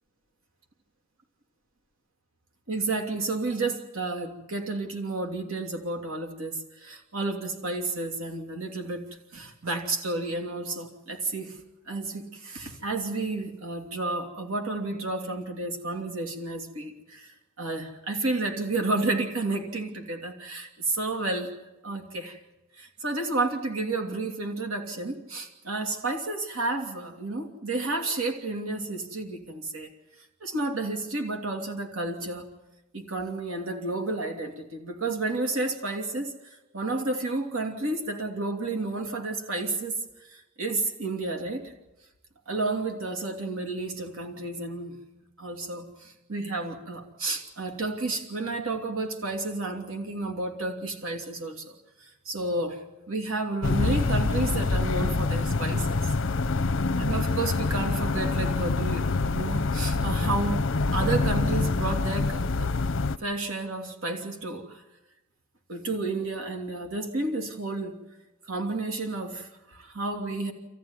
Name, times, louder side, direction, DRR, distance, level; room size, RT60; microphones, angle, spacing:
voice 1, 2.7-9.1 9.3-11.5 11.9-17.3 17.6-21.5 21.8-22.4 22.8-29.9 30.4-32.5 32.9-36.3 36.7-40.0 40.6-41.7 42.5-45.0 45.4-51.7 52.0-52.8 53.1-56.1 57.0-60.6 60.9-62.7 63.2-64.8 65.7-68.0 68.5-70.5, right 2 dB, 80° right, 3 dB, 2.9 m, -31 dB
sound 1, 53.6-63.2, left 3 dB, 65° left, 0.7 m, -26 dB
27.0 x 15.0 x 9.7 m, 1.0 s
head